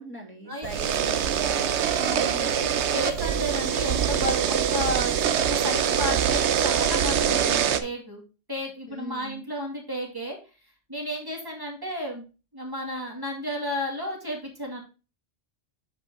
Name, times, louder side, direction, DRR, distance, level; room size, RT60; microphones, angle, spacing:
voice 1, 0.0-2.3 8.9-9.4, right 2 dB, 10° left, 1 dB, 2.5 m, -40 dB
sound 1, 0.6-7.8, right 8 dB, 85° right, 1.0 m, -24 dB
voice 2, 2.0-8.2 8.5-10.4 10.9-12.2 12.5-14.8, equal, 20° right, -1 dB, 2.3 m, -32 dB
8.0 x 5.6 x 3.7 m, 0.33 s
omnidirectional pair, 1.1 m